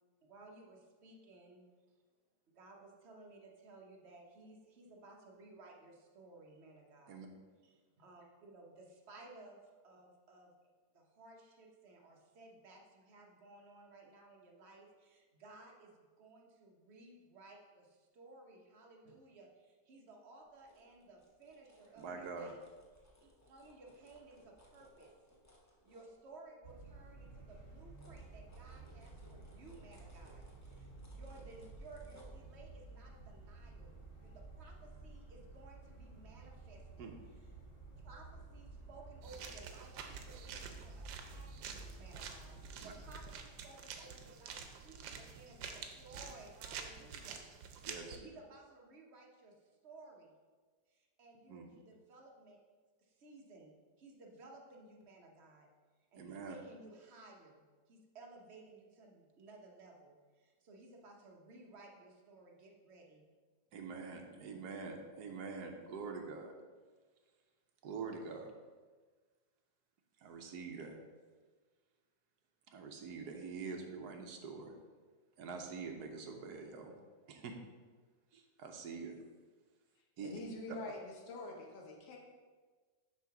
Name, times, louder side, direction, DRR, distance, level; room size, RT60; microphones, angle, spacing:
voice 1, 0.2-1.6 2.5-7.2 7.6-9.6 9.8-10.5 10.9-22.6 23.2-25.1 25.8-37.1 38.0-47.4 47.8-50.3 50.9-52.6 53.0-55.7 56.1-57.6 57.9-63.2, right 2 dB, 45° right, 0 dB, 1.0 m, -57 dB
sound 1, 20.4-26.7 27.1-34.7 35.0-35.2, equal, 20° left, 0.4 m, -65 dB
voice 2, 22.0-22.5 37.0-37.2 42.8-42.9 47.8-48.2 51.5-51.7 56.1-56.5 63.7-66.5 67.8-68.5 70.2-71.0 72.7-74.8 75.4-76.9 77.3-77.5 78.3-79.2 80.2-80.4, right 4 dB, 65° right, 3 dB, 1.2 m, -45 dB
sound 2, 26.6-43.4, right 3 dB, 35° left, 1.5 m, -53 dB
sound 3, 39.2-48.2, right 6 dB, 85° right, 1.3 m, -49 dB
voice 3, 80.2-82.2, left 2 dB, 85° left, 0 dB, 1.7 m, -46 dB
7.5 x 3.0 x 5.8 m, 1.4 s
omnidirectional pair, 2.0 m